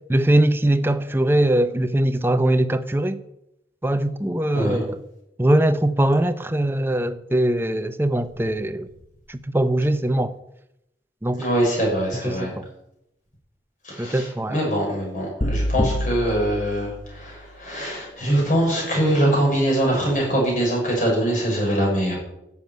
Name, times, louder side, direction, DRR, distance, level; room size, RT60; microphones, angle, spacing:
voice 1, 0.1-3.2 3.8-5.0 5.4-8.9 9.3-10.3 11.2-11.5 12.2-12.7 14.0-14.6, right 1 dB, 10° right, 0.6 m, -21 dB
voice 2, 11.3-12.5 13.8-22.2, right 1 dB, 45° left, 6.4 m, -23 dB
sound 1, 15.4-17.5, left 1 dB, 30° left, 0.9 m, -26 dB
13.0 x 7.1 x 9.3 m
head